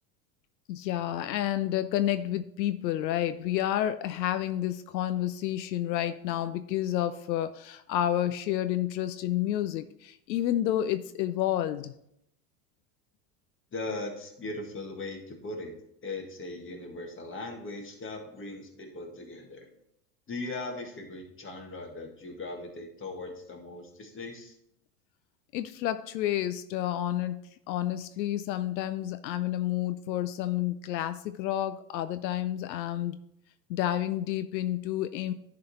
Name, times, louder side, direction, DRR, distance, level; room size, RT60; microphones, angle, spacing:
voice 1, 0.7-12.0 25.5-27.4 27.7-33.2 33.7-35.3, left 12 dB, 85° left, 11 dB, 0.6 m, -30 dB
voice 2, 13.7-15.7 16.0-19.7 20.3-24.6, left 2 dB, 25° left, 2 dB, 1.8 m, -39 dB
10.5 x 3.9 x 4.2 m, 0.76 s
hypercardioid pair, 95°, 50 cm